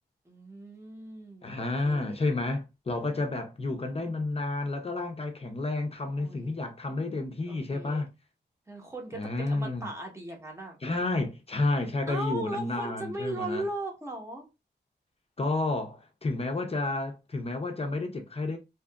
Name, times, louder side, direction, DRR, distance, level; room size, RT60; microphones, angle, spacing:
voice 1, 0.3-2.2 6.2-6.6 7.5-8.0 8.7-10.8 12.1-14.5, right 1 dB, 15° right, 0.9 m, -38 dB
voice 2, 1.4-8.1 9.1-9.9 10.8-13.6 15.4-18.6, left 2 dB, 35° left, 0.5 m, -31 dB
2.8 x 2.4 x 2.2 m
wide cardioid pair, 120°, 18 cm